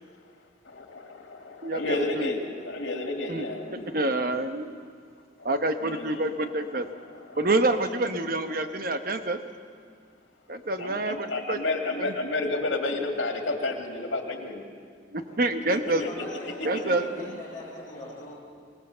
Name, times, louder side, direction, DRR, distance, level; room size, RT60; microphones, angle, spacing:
voice 1, 0.7-3.9 5.8-6.3 7.2-7.4 8.6-8.7 10.8-14.6 15.7-17.1, left 2 dB, 90° left, 3 dB, 2.6 m, -31 dB
voice 2, 1.6-2.3 3.3-3.4 3.7-4.7 5.4-6.9 7.4-9.4 10.5-11.6 12.0-12.1 15.1-16.0 16.6-17.4, right 2 dB, 50° right, 8 dB, 1.1 m, -27 dB
voice 3, 16.1-18.4, equal, 15° left, -8 dB, 7.1 m, -41 dB
25.5 x 18.5 x 6.8 m, 2.1 s
head